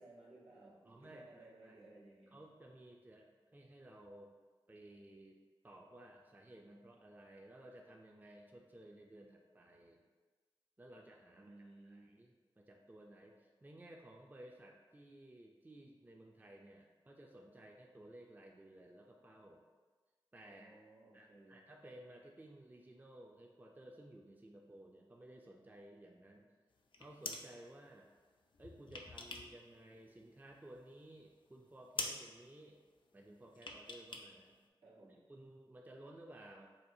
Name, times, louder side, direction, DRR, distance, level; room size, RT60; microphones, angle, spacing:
voice 1, 0.0-2.4 11.3-12.1 20.4-21.7 34.8-35.2, right 2 dB, 85° right, -9 dB, 1.1 m, -59 dB
voice 2, 0.9-1.8 2.3-4.4 4.7-5.4 5.6-10.0 10.8-11.5 11.9-19.6 20.3-20.8 21.1-26.5 27.0-28.1 28.6-32.8 33.1-34.6 35.3-36.7, right 1 dB, 20° right, 0 dB, 0.4 m, -57 dB
sound 1, 26.8-27.5 28.5-29.6 29.9-30.8 31.1-31.2 31.6-31.7 31.9-32.2 33.6-34.3 34.5-34.6, left 3 dB, 55° left, 0.4 m, -45 dB
4.3 x 2.3 x 2.7 m, 1.4 s
cardioid pair, 45°, 10 cm